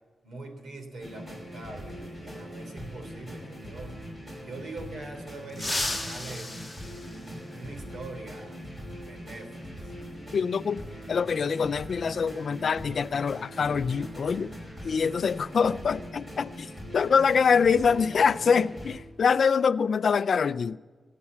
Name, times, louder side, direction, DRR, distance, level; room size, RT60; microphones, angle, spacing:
voice 1, 0.2-3.9 4.4-6.5 7.0-8.6 9.0-9.9 15.1-15.3, right 2 dB, 70° right, 3.2 m, -43 dB
sound 1, 1.0-19.0, equal, 15° right, 5.2 m, -41 dB
sound 2, 5.5-7.9 9.6-9.7 10.9-11.0 12.6-12.8 13.1-13.3 13.8-16.0 16.3-16.5 16.9-17.4, left 1 dB, ahead, 2.3 m, -36 dB
voice 2, 10.3-10.8 11.1-14.5 14.8-20.8, left 6 dB, 50° left, 0.4 m, -24 dB
23.5 x 8.4 x 7.2 m
wide cardioid pair, 170°, 0 cm